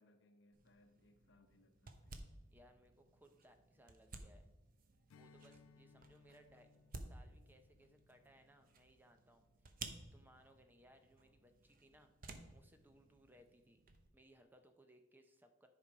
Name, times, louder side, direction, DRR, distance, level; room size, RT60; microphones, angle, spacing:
voice 1, 0.0-2.3, left 1 dB, 60° left, 8 dB, 0.9 m, -70 dB
sound 1, 0.5-14.1, right 3 dB, 45° right, 0.8 m, -56 dB
voice 2, 2.5-4.5 5.1-6.7 7.0-9.4 10.1-12.1 12.5-13.8 14.1-15.7, right 1 dB, 10° right, 6 dB, 0.6 m, -66 dB
Strum, 5.1-9.9, left 4 dB, 90° left, 0.4 m, -68 dB
10.0 x 5.3 x 4.8 m, 1.1 s
head